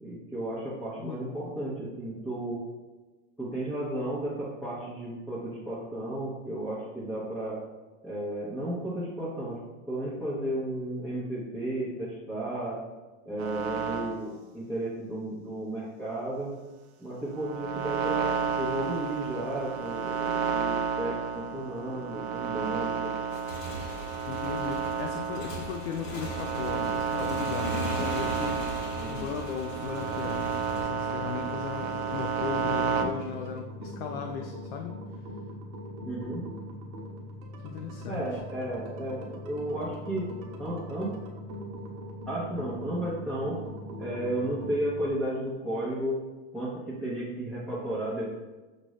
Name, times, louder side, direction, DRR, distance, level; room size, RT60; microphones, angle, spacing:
voice 1, 0.0-2.6 3.4-7.6 8.0-9.6 9.9-12.8 13.2-16.5 17.0-23.1 28.9-29.2 36.0-36.4 38.1-40.3 40.6-41.1 42.3-43.6 44.0-46.2 46.5-48.3, right 1 dB, ahead, -10 dB, 0.8 m, -33 dB
voice 2, 1.0-1.3 24.3-35.0 37.6-38.4, left 7 dB, 60° left, 4 dB, 0.5 m, -37 dB
sound 1, 13.4-14.2 17.3-33.0, right 6 dB, 60° right, 0.6 m, -31 dB
Motorcycle / Engine, 23.2-30.8, left 1 dB, 85° left, 1.1 m, -38 dB
sound 2, 29.7-45.1, equal, 40° right, 0.9 m, -41 dB
6.2 x 2.6 x 3.1 m, 1.2 s
supercardioid pair, 140°, 37 cm